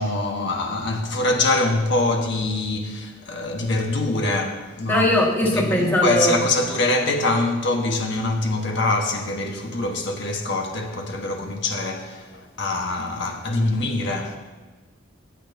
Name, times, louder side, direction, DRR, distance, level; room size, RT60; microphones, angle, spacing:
voice 1, 0.0-5.1 5.5-14.4, left 2 dB, 60° left, 1.3 m, -24 dB
voice 2, 4.9-6.4, left 1 dB, 10° left, 1.8 m, -20 dB
24.5 x 8.6 x 2.7 m
head